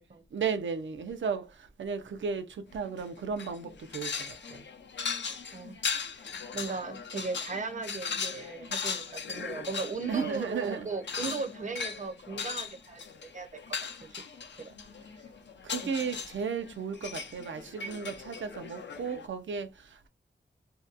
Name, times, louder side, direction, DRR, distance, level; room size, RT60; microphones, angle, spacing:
voice 1, 0.3-1.5 1.8-4.6 10.1-10.9 15.6-19.7, right 6 dB, 80° right, 0.5 m, -34 dB
sound 1, 2.8-3.1 3.4-19.3, left 5 dB, 70° left, 0.5 m, -38 dB
voice 2, 5.5-5.8 6.2-13.5 14.0-14.1 14.6-14.7 15.1-15.2 15.8-15.9, right 4 dB, 40° right, 0.6 m, -37 dB
2.8 x 2.2 x 2.4 m
wide cardioid pair, 100°, 19 cm